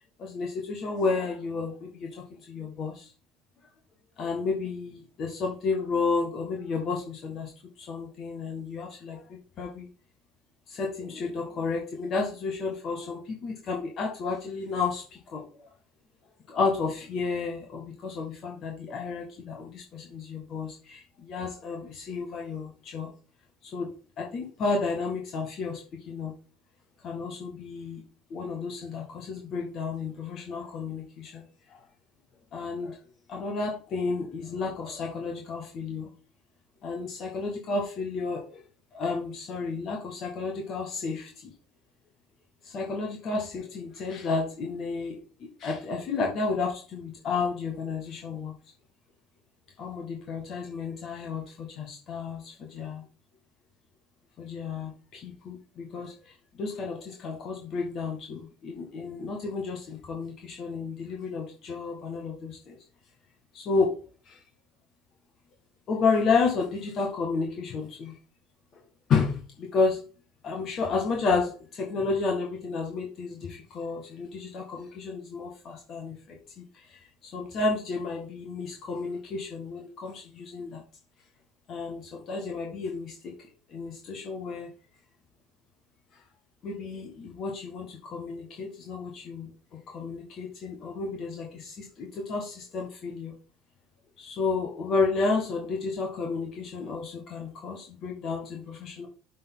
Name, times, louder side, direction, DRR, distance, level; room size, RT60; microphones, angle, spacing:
voice 1, 0.2-3.1 4.2-7.5 7.8-9.9 10.7-15.5 16.5-23.1 23.6-26.3 27.0-28.0 28.3-31.8 32.5-33.0 33.3-36.1 36.8-38.6 38.9-41.5 42.6-45.2 45.6-48.5 49.8-53.0 54.4-62.8 63.5-64.0 64.3-64.4 65.9-68.1 69.1-70.0 70.4-80.8 81.7-83.4 83.7-84.7 86.6-93.4 94.2-99.1, left 4 dB, 50° left, 0 dB, 1.7 m, -31 dB
11.5 x 4.1 x 3.8 m, 0.36 s
hypercardioid pair, 65°, 0 cm